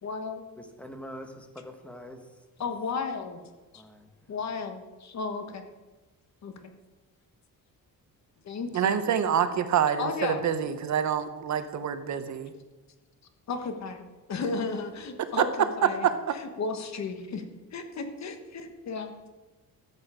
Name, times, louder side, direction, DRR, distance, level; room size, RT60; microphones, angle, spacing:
voice 1, 0.0-0.4 2.6-3.4 3.7-3.8 4.3-5.6 6.4-6.5 8.4-9.1 10.0-10.4 13.5-14.0 14.3-17.4 17.7-19.1, left 4 dB, 50° left, 7 dB, 1.3 m, -34 dB
voice 2, 0.6-2.4 3.7-4.1, equal, 5° left, 5 dB, 1.2 m, -44 dB
voice 3, 8.7-12.5 16.0-16.1, right 8 dB, 50° right, 10 dB, 0.8 m, -27 dB
14.0 x 8.2 x 4.9 m, 1.2 s
cardioid pair, 155°, 36 cm